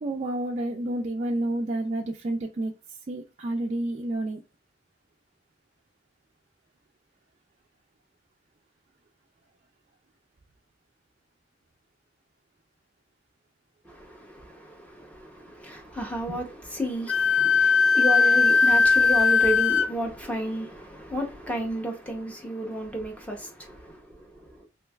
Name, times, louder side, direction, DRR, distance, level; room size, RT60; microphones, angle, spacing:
voice 1, 0.0-2.7 3.1-4.4 16.3-16.4, right 1 dB, 35° right, 0.3 m, -29 dB
voice 2, 13.8-24.6, equal, 5° left, 0.7 m, -32 dB
Wind instrument woodwind instrument, 17.1-19.9, left 5 dB, 80° left, 0.3 m, -19 dB
3.1 x 3.1 x 2.2 m
head